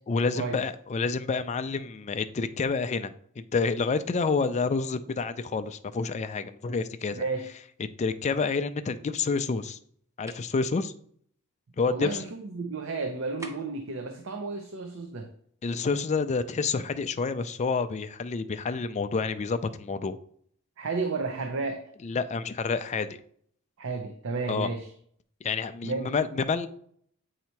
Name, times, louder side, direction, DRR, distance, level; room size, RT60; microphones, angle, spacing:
voice 1, 0.1-7.2 8.0-9.8 10.2-10.9 11.8-12.2 15.6-20.2 22.0-23.1 24.5-24.7 25.4-26.7, left 4 dB, 30° left, 11 dB, 0.3 m, -28 dB
voice 2, 7.1-7.5 11.9-15.3 20.8-21.9 23.8-24.9 25.8-26.1, right 3 dB, 65° right, 5 dB, 0.6 m, -32 dB
sound 1, 10.3-10.5 13.4-13.9, right 2 dB, 15° right, 0.6 m, -44 dB
8.3 x 2.8 x 4.4 m, 0.63 s
head